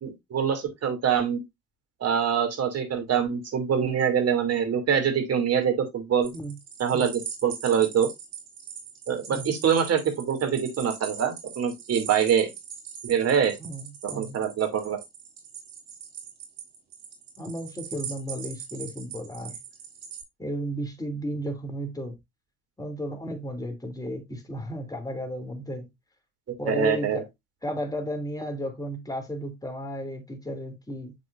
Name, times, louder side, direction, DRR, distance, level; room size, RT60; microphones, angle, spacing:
voice 1, 0.0-1.4 2.0-6.3 6.8-8.1 9.1-12.5 13.0-13.6 14.0-15.0 26.7-27.2, right 8 dB, 45° right, 3.0 m, -24 dB
sound 1, 6.2-20.2, right 8 dB, 75° right, 3.0 m, -41 dB
voice 2, 13.6-14.4 17.4-19.6 20.4-22.2 22.8-25.9 26.6-27.2 27.6-31.1, equal, 10° left, 3.0 m, -34 dB
7.4 x 6.1 x 2.6 m
hypercardioid pair, 65°, 34 cm